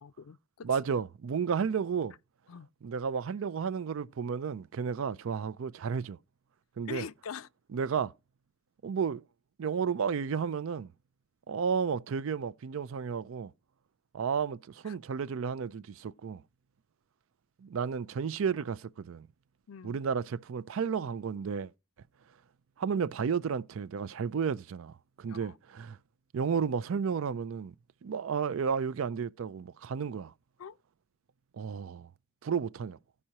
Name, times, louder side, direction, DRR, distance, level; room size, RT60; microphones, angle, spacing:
voice 1, 0.0-0.7 2.5-2.7 6.9-7.5 14.9-15.0 19.7-20.0 25.3-25.6 30.6-30.8, left 6 dB, 75° left, 0.4 m, -43 dB
voice 2, 0.6-2.1 2.8-6.2 6.8-7.1 7.7-8.1 8.8-9.2 9.6-10.9 11.5-13.5 14.1-16.4 17.6-19.3 19.8-21.7 22.8-26.0 26.3-27.7 28.0-30.3 31.5-32.1 32.4-33.0, right 6 dB, 70° right, 0.4 m, -32 dB
16.5 x 5.5 x 2.9 m
head